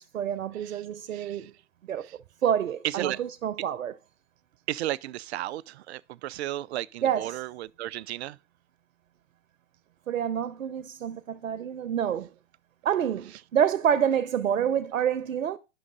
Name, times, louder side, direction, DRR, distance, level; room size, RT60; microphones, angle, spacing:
voice 1, 0.0-1.5 1.9-2.1 2.4-3.9 7.0-7.4 10.1-12.3 12.8-15.6, right 9 dB, 85° right, 0.8 m, -27 dB
voice 2, 0.5-1.5 2.0-2.2 2.8-3.2 4.7-8.4, right 14 dB, 55° right, 0.5 m, -34 dB
11.0 x 6.4 x 3.8 m
hypercardioid pair, 120°, 38 cm